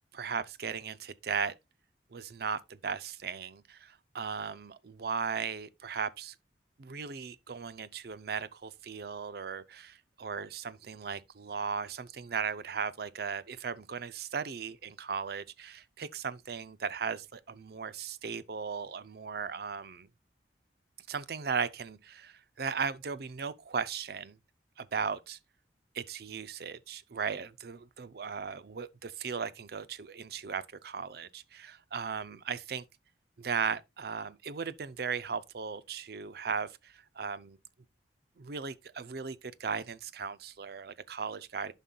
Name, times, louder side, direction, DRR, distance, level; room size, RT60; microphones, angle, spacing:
voice 1, 0.1-1.5 2.1-6.3 6.8-20.1 21.1-24.4 24.8-25.4 25.9-32.8 33.4-37.6 38.4-41.7, right 6 dB, 60° right, 0.5 m, -37 dB
11.0 x 5.5 x 2.3 m
head